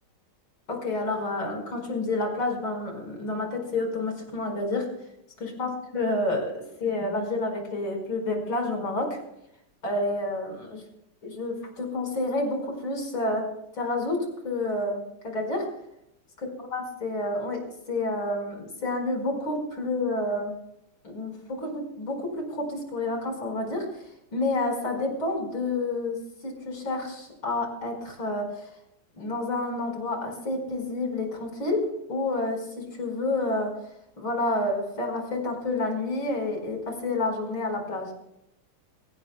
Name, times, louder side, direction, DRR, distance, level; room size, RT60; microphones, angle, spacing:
voice 1, 0.7-4.9 5.4-9.2 9.8-10.8 11.2-15.7 16.7-20.5 21.0-24.0 24.3-28.7 29.2-33.8 34.2-38.1, left 2 dB, 75° left, 2 dB, 5.8 m, -29 dB
24.0 x 18.0 x 2.2 m, 0.80 s
omnidirectional pair, 2.2 m